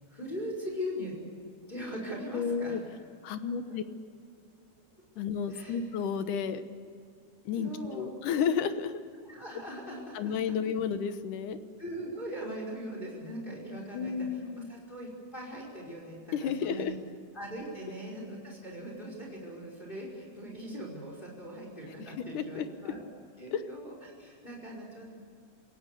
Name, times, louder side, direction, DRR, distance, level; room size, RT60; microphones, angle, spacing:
voice 1, 0.1-1.2 1.7-2.8 5.5-5.8 7.6-8.1 9.2-10.4 11.8-14.4 14.7-16.9 17.3-23.0 23.4-25.1, equal, 15° left, -1 dB, 5.4 m, -40 dB
voice 2, 2.3-2.8 3.2-3.8 5.2-6.6 7.5-9.0 10.1-11.6 13.9-14.7 16.3-16.9 22.0-22.1 22.3-22.9 23.5-23.6, left 7 dB, 90° left, 10 dB, 2.7 m, -32 dB
27.5 x 16.0 x 8.4 m, 2.3 s
omnidirectional pair, 3.5 m